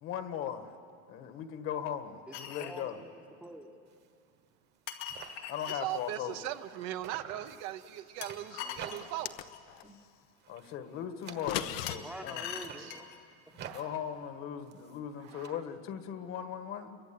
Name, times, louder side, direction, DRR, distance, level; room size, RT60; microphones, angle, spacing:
voice 1, 0.0-0.7 1.1-3.0 5.5-6.4 10.5-12.5 13.7-17.0, left 9 dB, 40° left, 9 dB, 1.6 m, -38 dB
sound 1, 2.3-2.8 4.9-5.8 8.2-9.7 11.9-13.2, left 8 dB, 85° left, 2.3 m, -42 dB
voice 2, 2.3-3.7 8.6-8.8 9.8-9.9 11.9-13.1, right 1 dB, 5° right, 6 dB, 1.1 m, -47 dB
sound 2, 3.9-4.1 4.4-4.5 4.7-6.7 7.0-9.4 9.7-10.1 10.4-11.9 12.4-15.5, right 7 dB, 30° right, 1.4 m, -50 dB
voice 3, 5.7-9.3 11.4-11.8 12.8-13.0 13.6-13.9 15.2-15.6, right 13 dB, 55° right, 10 dB, 1.0 m, -40 dB
sound 3, 9.0-9.9 11.3-12.0, left 14 dB, 70° left, 1.1 m, -37 dB
29.5 x 23.5 x 8.7 m, 2.5 s
cardioid pair, 175°, 32 cm